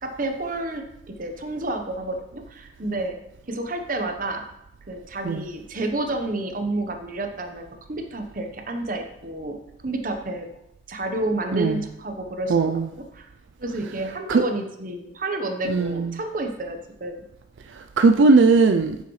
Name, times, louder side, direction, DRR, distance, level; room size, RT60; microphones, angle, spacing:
voice 1, 0.0-3.2 3.5-4.4 4.9-9.6 9.8-10.5 10.9-12.7 13.1-13.3 13.6-17.2, right 2 dB, 45° right, 5 dB, 1.0 m, -30 dB
voice 2, 11.5-11.8 12.5-12.9 14.3-14.4 15.7-16.1 17.8-19.0, right 4 dB, 80° right, 6 dB, 0.4 m, -18 dB
9.4 x 6.7 x 3.2 m, 0.81 s
head